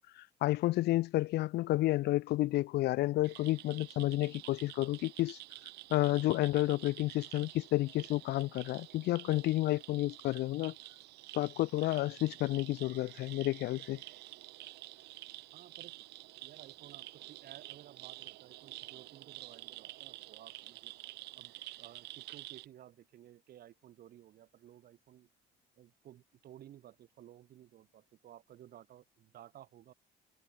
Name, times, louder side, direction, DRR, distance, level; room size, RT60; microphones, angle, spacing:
voice 1, 0.0-5.4 5.9-10.7 11.3-14.0, left 17 dB, 75° left, 1.0 m, -31 dB
sound 1, 3.2-22.7, right 19 dB, 85° right, 3.0 m, -50 dB
voice 2, 15.5-15.9 16.4-20.9 21.3-25.3 25.8-29.9, right 12 dB, 65° right, 6.7 m, -56 dB
cardioid pair, 110°, 17 cm